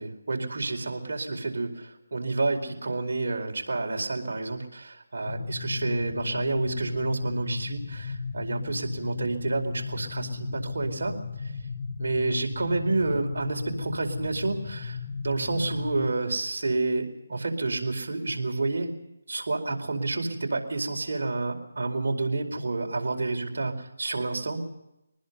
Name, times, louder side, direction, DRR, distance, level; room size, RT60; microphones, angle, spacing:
voice 1, 0.0-11.5 12.0-18.9 19.3-24.7, right 3 dB, 70° right, 2 dB, 4.6 m, -29 dB
sound 1, 5.3-16.1, left 4 dB, 40° left, 1.4 m, -35 dB
24.5 x 20.0 x 5.5 m, 0.89 s
figure-of-eight pair, 160°, 0 cm